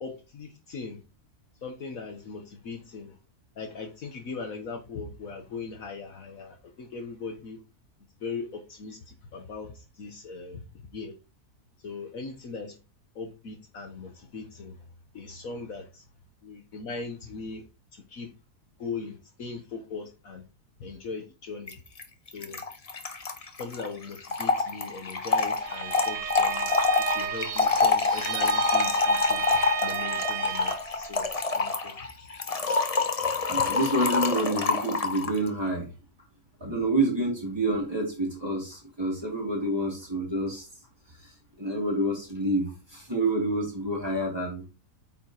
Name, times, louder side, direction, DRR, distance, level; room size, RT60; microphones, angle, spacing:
voice 1, 0.0-1.0 1.6-3.2 3.6-7.6 8.2-10.6 10.9-11.1 11.8-12.8 13.1-14.8 15.1-16.0 16.4-17.6 17.9-18.3 18.8-20.4 20.8-21.7 22.3-22.6 23.6-31.3 31.6-31.9 32.2-32.3 33.6-33.7, left 4 dB, 60° left, 1.4 m, -39 dB
Trickle dribble / Fill (with liquid), 21.7-21.8 22.0-22.1 22.3-35.4, left 4 dB, 30° left, 0.7 m, -26 dB
Bowed string instrument, 25.6-30.9, right 10 dB, 85° right, 1.6 m, -33 dB
voice 2, 33.5-35.9 36.6-40.7 41.2-41.3 41.6-44.6, right 1 dB, 15° right, 3.1 m, -28 dB
8.6 x 5.8 x 3.0 m
omnidirectional pair, 1.7 m